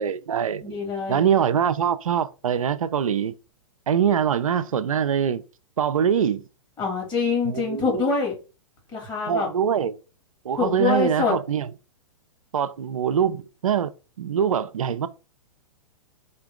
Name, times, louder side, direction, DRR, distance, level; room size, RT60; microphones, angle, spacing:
voice 1, 0.0-0.8 1.1-3.4 3.9-5.4 5.8-6.4 7.4-8.0 9.3-10.0 10.4-11.7 12.5-13.9 14.2-15.1, right 8 dB, 80° right, 0.5 m, -23 dB
voice 2, 0.6-1.2 6.8-8.4 8.9-9.5 10.6-11.3, left 5 dB, 25° left, 2.6 m, -25 dB
3.8 x 3.3 x 3.7 m
hypercardioid pair, 120°, 17 cm